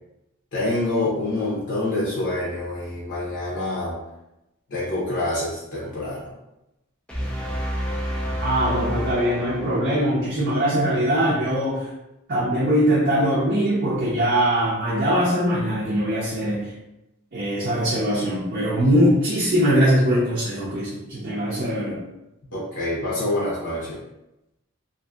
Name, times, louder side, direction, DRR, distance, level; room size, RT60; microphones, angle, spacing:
voice 1, 0.5-3.9 4.7-6.3 22.5-24.0, left 2 dB, 60° left, -7 dB, 0.7 m, -26 dB
sound 1, 7.1-10.3, equal, 5° left, 0.4 m, -29 dB
voice 2, 8.4-11.9 12.3-16.7 17.3-22.0, equal, 45° right, -7 dB, 0.6 m, -21 dB
2.6 x 2.5 x 2.3 m, 0.92 s
head